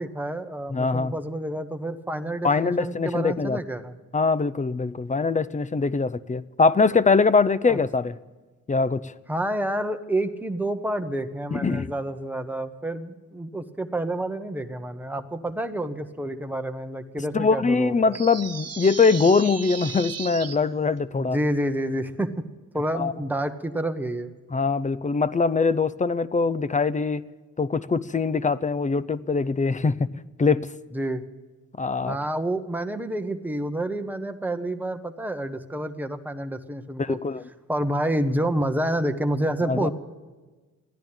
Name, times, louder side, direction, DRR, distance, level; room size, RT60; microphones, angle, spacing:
voice 1, 0.0-4.0 7.7-7.8 9.3-18.2 21.2-22.3 22.7-24.3 30.9-31.2 32.1-37.2 37.7-39.9, right 1 dB, 5° right, 7 dB, 1.1 m, -28 dB
voice 2, 0.7-1.1 2.4-3.6 4.1-8.2 8.7-9.1 11.5-11.9 17.3-21.4 22.9-23.1 24.5-27.2 27.6-30.1 30.4-30.7 31.8-32.2 37.0-37.4 39.6-39.9, left 4 dB, 20° left, 17 dB, 0.6 m, -22 dB
sound 1, 18.1-20.6, right 6 dB, 45° right, 1.2 m, -36 dB
14.0 x 10.5 x 8.8 m, 1.3 s
cardioid pair, 75°, 34 cm